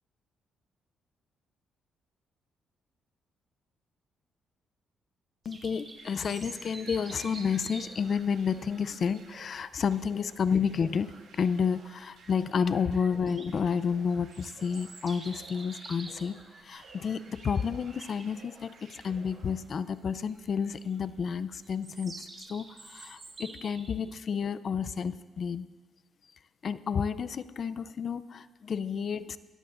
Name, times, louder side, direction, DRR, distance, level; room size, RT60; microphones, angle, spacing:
sound 1, 5.4-24.0, right 3 dB, 35° right, 1.5 m, -49 dB
voice 1, 5.5-25.7 26.6-29.4, left 6 dB, 50° left, 15 dB, 0.5 m, -31 dB
sound 2, 5.9-19.8, right 4 dB, 80° right, 2.6 m, -56 dB
23.5 x 12.5 x 2.6 m, 1.3 s
cardioid pair, 90°, 0 cm